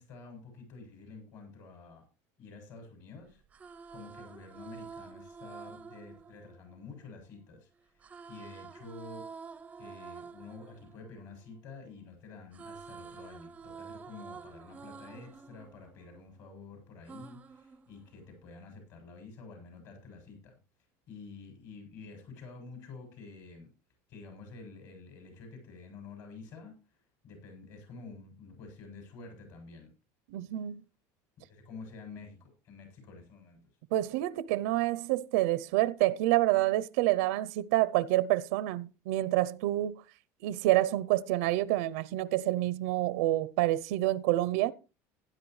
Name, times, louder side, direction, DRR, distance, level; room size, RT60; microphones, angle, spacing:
voice 1, 0.0-2.1 2.4-9.3 9.8-20.6 21.1-23.7 24.1-29.9 30.5-30.6 31.4-33.6, left 4 dB, 50° left, 7.9 m, -49 dB
sound 1, 3.3-7.4 8.0-12.1 12.3-16.6 17.1-18.5, right 5 dB, 20° right, 0.5 m, -49 dB
voice 2, 30.3-30.8 33.9-40.0 40.4-44.7, right 16 dB, 90° right, 0.6 m, -28 dB
16.0 x 12.5 x 3.2 m
cardioid pair, 155°, 7 cm